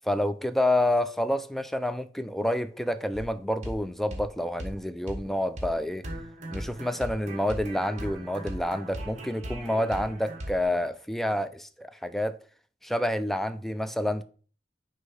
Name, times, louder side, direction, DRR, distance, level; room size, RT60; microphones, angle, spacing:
voice 1, 0.0-6.1 6.5-12.4 12.8-14.2, left 1 dB, ahead, 0.3 m, -28 dB
sound 1, 3.1-3.3 3.6-3.8 4.1-4.3 4.6-4.8 5.1-5.2 5.6-5.7 6.0-10.6, right 1 dB, 40° right, 1.3 m, -38 dB
6.4 x 2.8 x 5.4 m
head